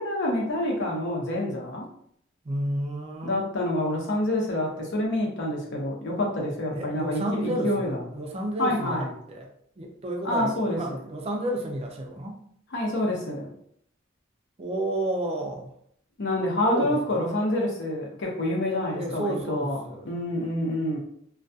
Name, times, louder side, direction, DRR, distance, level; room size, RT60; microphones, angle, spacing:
voice 1, 0.0-1.9 3.2-7.9 8.6-9.1 10.2-11.0 12.7-13.5 16.2-19.8 20.0-21.0, left 1 dB, 60° left, -1 dB, 0.7 m, -27 dB
voice 2, 2.4-3.5 6.7-9.5 9.8-12.4 14.6-15.7 16.6-17.2 18.9-20.1, right 1 dB, 30° right, 2 dB, 0.4 m, -31 dB
2.3 x 2.2 x 2.6 m, 0.68 s
head